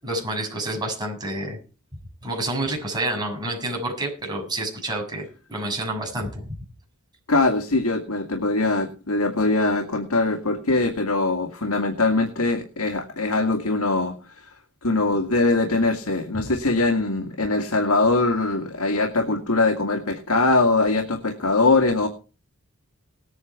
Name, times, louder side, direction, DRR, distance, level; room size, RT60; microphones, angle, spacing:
voice 1, 0.0-1.6 2.2-6.4, right 1 dB, 20° right, 1 dB, 6.6 m, -28 dB
voice 2, 7.3-14.5 14.8-22.1, left 3 dB, 85° left, 4 dB, 2.2 m, -22 dB
19.0 x 9.3 x 4.7 m, 0.35 s
head